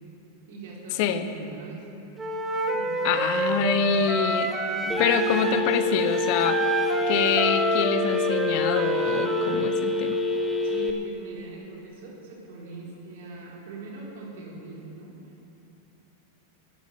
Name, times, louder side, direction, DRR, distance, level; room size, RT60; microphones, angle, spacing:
voice 1, 0.5-1.9 2.7-4.0 4.6-5.5 10.5-15.5, right 3 dB, 70° right, -3 dB, 3.9 m, -42 dB
voice 2, 1.0-1.3 3.0-4.5 5.0-6.6 7.1-10.2, left 8 dB, 55° left, 10 dB, 0.9 m, -26 dB
Wind instrument woodwind instrument, 2.2-9.7, right 2 dB, 20° right, 1.5 m, -28 dB
Telephone, 4.9-10.9, left 2 dB, 5° left, 1.3 m, -26 dB
11.0 x 10.5 x 8.3 m, 3.0 s
hypercardioid pair, 110°, 0 cm